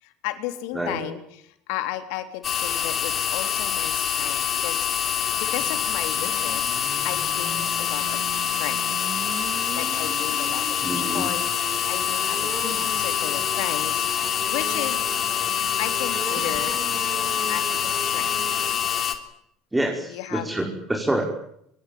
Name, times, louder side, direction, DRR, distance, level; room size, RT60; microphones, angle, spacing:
voice 1, 0.0-4.9 5.4-6.6 7.0-8.2 8.6-9.0 9.7-10.7 10.9-11.5 11.9-15.1 15.8-16.8 17.5-18.4 20.1-20.5, left 14 dB, 70° left, 9 dB, 3.3 m, -34 dB
sound 1, 2.4-19.1, left 9 dB, 45° left, 3.7 m, -25 dB
sound 2, 5.2-18.9, right 7 dB, 45° right, 3.4 m, -39 dB
voice 2, 10.8-11.3 19.7-21.2, right 1 dB, 10° right, 1 dB, 6.1 m, -26 dB
24.5 x 23.0 x 9.6 m, 0.75 s
hypercardioid pair, 70°, 0 cm